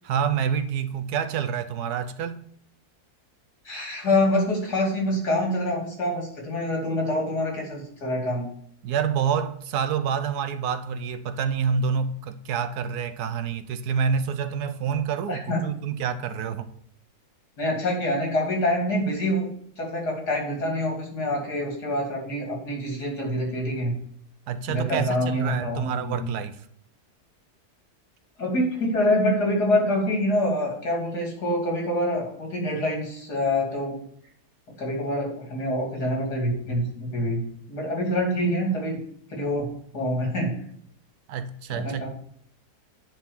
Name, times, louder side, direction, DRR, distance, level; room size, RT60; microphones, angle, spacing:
voice 1, 0.0-2.4 8.8-16.7 24.5-26.6 41.3-42.1, right 7 dB, 80° right, 1.2 m, -27 dB
voice 2, 3.6-8.5 15.3-15.6 17.6-19.5 19.8-24.0 24.7-26.3 28.4-34.0 34.8-39.0 39.3-40.6 41.7-42.1, left 1 dB, 75° left, 3.4 m, -26 dB
9.7 x 4.4 x 7.0 m
omnidirectional pair, 1.7 m